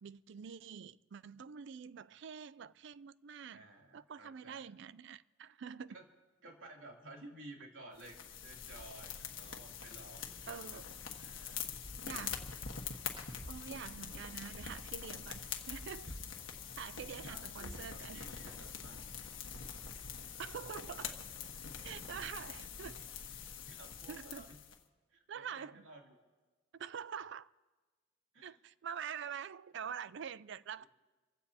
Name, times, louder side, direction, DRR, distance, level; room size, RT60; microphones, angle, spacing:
voice 1, 0.0-3.7 3.9-6.0 10.5-10.8 12.0-12.5 13.5-16.1 16.8-18.3 20.4-21.1 21.8-23.0 24.1-24.4 25.3-25.9 26.7-27.5 28.4-30.9, right 7 dB, 60° right, 0.4 m, -46 dB
voice 2, 3.5-4.7 5.9-6.0 6.4-11.6 16.0-16.2 17.2-19.0 20.8-21.2 21.8-22.3 23.7-24.6 25.1-26.1 28.3-28.6 30.8-30.9, right 2 dB, 80° right, 3.0 m, -55 dB
sound 1, 8.0-24.8, left 7 dB, 80° left, 1.4 m, -45 dB
sound 2, 11.7-20.9, equal, 25° right, 5.1 m, -54 dB
27.5 x 16.0 x 2.9 m
head